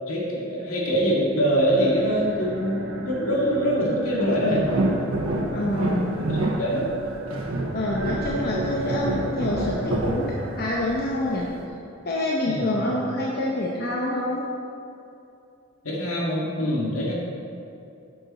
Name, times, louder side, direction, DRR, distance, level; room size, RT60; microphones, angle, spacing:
voice 1, 0.1-2.8 3.0-4.6 6.2-6.9 12.4-13.0 15.8-17.1, equal, 75° left, -4 dB, 2.1 m, -24 dB
sound 1, 1.4-11.9, right 2 dB, 55° right, 0.9 m, -37 dB
sound 2, 4.2-10.9 11.3-11.4, right 1 dB, 80° right, 1.2 m, -27 dB
voice 2, 5.5-6.2 7.7-11.5 12.0-14.4, left 1 dB, 45° left, -3 dB, 0.8 m, -26 dB
9.2 x 7.1 x 4.3 m, 2.7 s
head